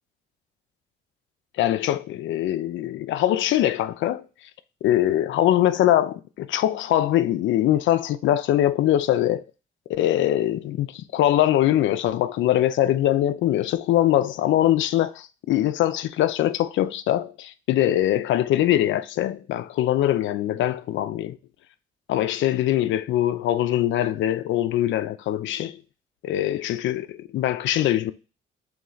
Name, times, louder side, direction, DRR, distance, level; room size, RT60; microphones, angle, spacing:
voice 1, 1.5-4.5 4.8-9.4 9.9-21.4 22.1-25.8 26.2-28.1, left 12 dB, 70° left, 0.4 m, -22 dB
3.1 x 3.1 x 3.8 m
cardioid pair, 90°, 20 cm